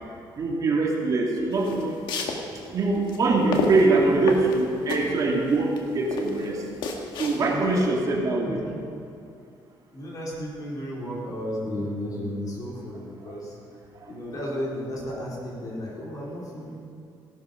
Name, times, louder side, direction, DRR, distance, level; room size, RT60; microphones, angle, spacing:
voice 1, 0.4-2.0 2.7-6.6 7.2-8.6, right 3 dB, 45° right, -2 dB, 2.7 m, -23 dB
sound 1, 1.5-7.8, left 4 dB, 75° left, 1.8 m, -31 dB
voice 2, 7.5-8.1 8.4-8.8 9.9-13.6 14.1-16.8, equal, 45° left, -4 dB, 4.3 m, -33 dB
17.5 x 12.0 x 5.4 m, 2.4 s
cardioid pair, 125°, 8 cm